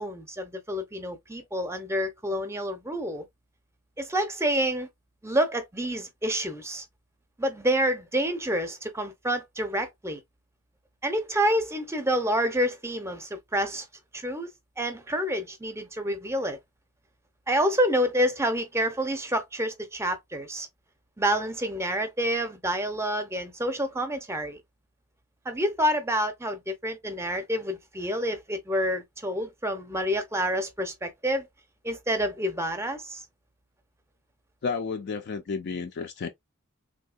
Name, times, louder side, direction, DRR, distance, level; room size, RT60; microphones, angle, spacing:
voice 1, 0.0-3.3 4.0-4.9 5.2-6.8 7.4-10.2 11.0-13.9 14.1-14.5 14.8-16.6 17.5-20.7 21.2-24.6 25.5-31.5 31.8-33.2, equal, 10° right, 0.6 m, -28 dB
voice 2, 34.6-36.3, left 5 dB, 45° left, 0.4 m, -31 dB
3.5 x 2.7 x 2.3 m
head